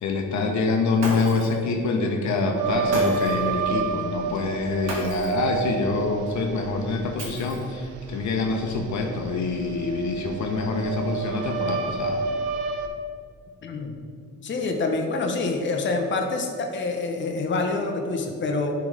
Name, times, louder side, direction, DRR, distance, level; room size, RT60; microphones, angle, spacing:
voice 1, 0.0-12.2, left 3 dB, 70° left, 3 dB, 0.8 m, -26 dB
Shatter, 1.0-1.6 2.9-3.5 4.9-5.5 7.2-7.8, right 1 dB, 60° right, 1.6 m, -33 dB
sound 1, 2.6-12.9, right 4 dB, 85° right, 0.6 m, -30 dB
voice 2, 13.6-13.9 14.4-18.7, left 3 dB, 40° left, 3 dB, 0.8 m, -26 dB
10.0 x 3.8 x 3.3 m, 2.3 s
cardioid pair, 90°, 30 cm